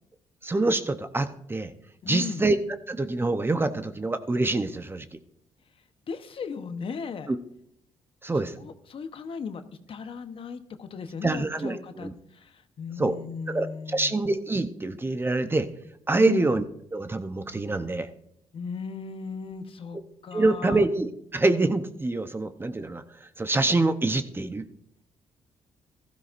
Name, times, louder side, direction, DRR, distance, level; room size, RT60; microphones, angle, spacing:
voice 1, 0.4-1.7 2.1-2.6 2.9-5.1 7.3-7.4 8.2-8.5 11.2-12.1 13.0-13.2 13.5-15.7 16.1-16.6 16.9-18.1 20.3-24.7, right 2 dB, 20° right, 10 dB, 0.8 m, -26 dB
voice 2, 2.0-2.4 6.1-7.3 8.6-9.6 9.9-14.2 16.1-16.5 18.5-20.0 20.2-20.8, left 5 dB, 55° left, 9 dB, 1.0 m, -36 dB
15.0 x 13.0 x 2.6 m, 0.72 s
cardioid pair, 80°, 11 cm